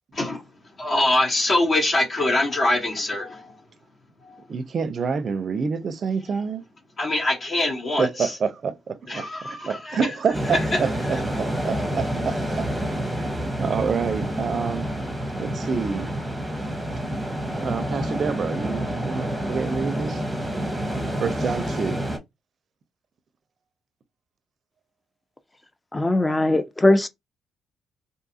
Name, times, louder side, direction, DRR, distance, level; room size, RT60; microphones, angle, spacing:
voice 1, 0.1-0.4 0.8-3.6 4.2-4.4 7.0-8.4 9.1-10.0 10.5-11.2, left 1 dB, 50° left, 1.1 m, -24 dB
voice 2, 4.5-6.7 8.0-12.6 13.1-14.9 15.4-16.1 17.5-20.2 21.2-22.0, right 5 dB, 50° right, 0.4 m, -28 dB
sound 1, 10.3-22.2, right 1 dB, 10° right, 0.8 m, -28 dB
voice 3, 25.9-27.1, left 2 dB, 15° left, 0.4 m, -20 dB
2.6 x 2.4 x 2.7 m
cardioid pair, 90°, 0 cm